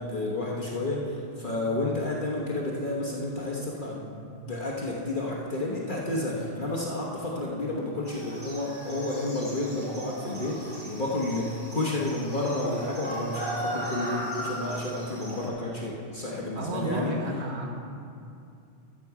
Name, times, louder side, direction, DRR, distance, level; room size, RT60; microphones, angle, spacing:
voice 1, 0.0-17.1, left 2 dB, 45° left, -3 dB, 1.3 m, -31 dB
sound 1, 8.1-15.5, right 1 dB, 10° left, 2.3 m, -37 dB
voice 2, 16.6-17.7, right 1 dB, 65° right, 2 dB, 1.5 m, -31 dB
13.5 x 7.4 x 4.8 m, 2.5 s
omnidirectional pair, 1.2 m